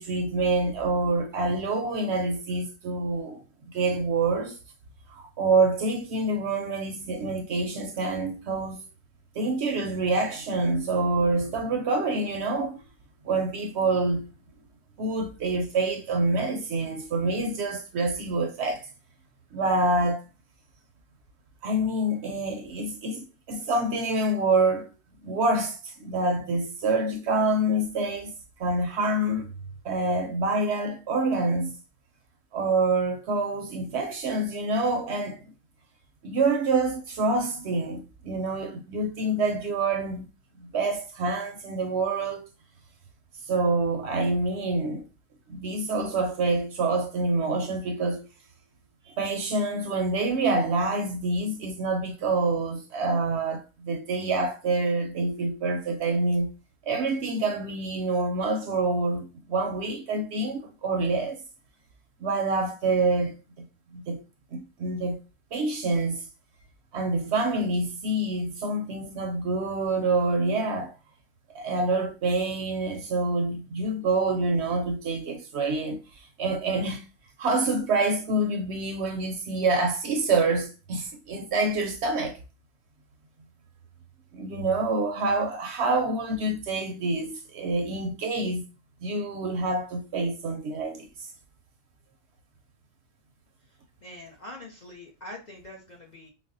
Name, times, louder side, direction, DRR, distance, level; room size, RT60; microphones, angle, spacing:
voice 1, 0.0-4.6 5.1-8.8 9.4-12.8 13.2-14.3 15.0-18.9 19.5-20.2 21.6-24.9 25.2-28.3 28.6-29.5 29.8-31.8 32.5-35.4 36.2-40.3 40.6-42.5 43.5-45.0 45.5-48.3 49.1-56.5 56.9-61.4 62.2-63.6 63.9-64.2 64.5-65.2 65.5-66.2 66.9-70.9 71.5-77.1 77.4-82.4 84.3-88.6 89.0-91.1, right 2 dB, 65° right, 0.7 m, -27 dB
voice 2, 94.0-96.3, left 1 dB, 45° left, 0.6 m, -44 dB
4.0 x 2.1 x 2.5 m
omnidirectional pair, 1.3 m